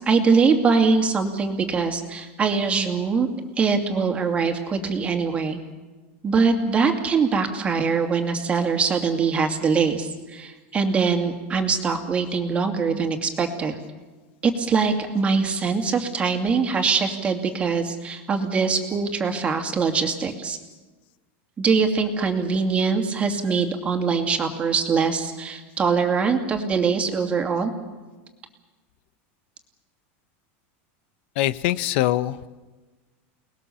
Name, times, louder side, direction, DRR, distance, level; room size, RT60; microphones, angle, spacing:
voice 1, 0.0-3.3 3.6-5.6 6.2-13.8 14.4-20.6 21.6-27.7, right 5 dB, 20° right, 4 dB, 2.5 m, -23 dB
voice 2, 31.4-32.5, left 14 dB, 60° left, 15 dB, 1.0 m, -23 dB
29.5 x 20.0 x 7.1 m, 1.2 s
supercardioid pair, 160°, 7 cm